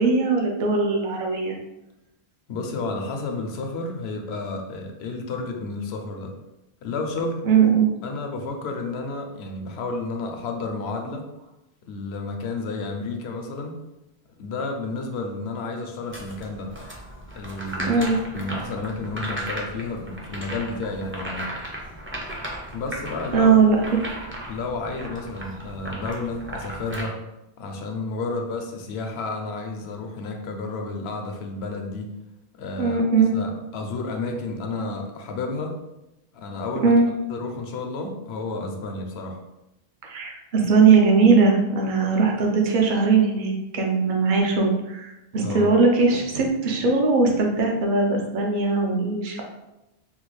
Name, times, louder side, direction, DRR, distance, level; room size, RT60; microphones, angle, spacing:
voice 1, 0.0-1.6 7.5-7.9 17.9-18.2 23.3-23.8 32.8-33.3 36.8-37.1 40.0-49.4, right 4 dB, 55° right, 1 dB, 0.7 m, -20 dB
voice 2, 2.5-6.3 6.8-7.4 8.0-11.3 11.9-13.8 14.4-16.7 17.3-21.5 22.7-23.5 24.5-27.2 27.6-32.1 32.6-33.0 33.3-35.8 36.3-36.9 37.3-39.4 45.4-45.7, left 3 dB, 80° left, 3 dB, 0.8 m, -31 dB
sound 1, 16.1-27.0, right 1 dB, 15° right, 0.4 m, -36 dB
3.6 x 2.3 x 3.1 m, 0.94 s
omnidirectional pair, 1.0 m